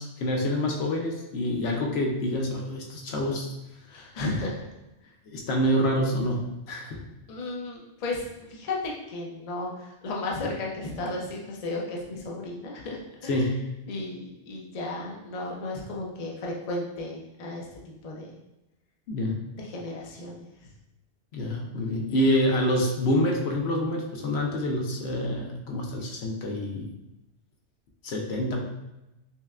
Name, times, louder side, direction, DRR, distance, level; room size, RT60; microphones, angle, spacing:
voice 1, 0.0-3.5 5.3-6.4 6.7-7.0 13.3-13.6 19.1-19.4 21.3-26.9 28.0-28.6, left 1 dB, 70° left, 0 dB, 0.9 m, -27 dB
voice 2, 3.9-4.7 7.3-8.2 8.5-13.5 13.9-17.7 18.0-18.3 19.5-20.5, left 2 dB, 45° left, -2 dB, 0.6 m, -34 dB
5.5 x 2.2 x 2.3 m, 0.93 s
omnidirectional pair, 1.2 m